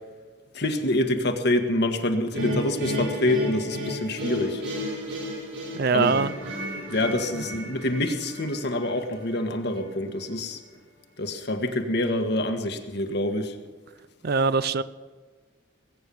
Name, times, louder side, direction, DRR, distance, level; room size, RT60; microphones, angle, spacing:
voice 1, 0.5-4.6 5.9-6.1 6.9-10.6 11.2-13.5, left 1 dB, 60° left, 6 dB, 1.6 m, -26 dB
sound 1, 2.3-9.4, equal, 75° right, 6.5 m, -33 dB
voice 2, 5.7-6.3 7.3-7.4 14.2-14.8, right 4 dB, 55° right, 15 dB, 0.6 m, -23 dB
20.0 x 9.2 x 7.0 m, 1.4 s
head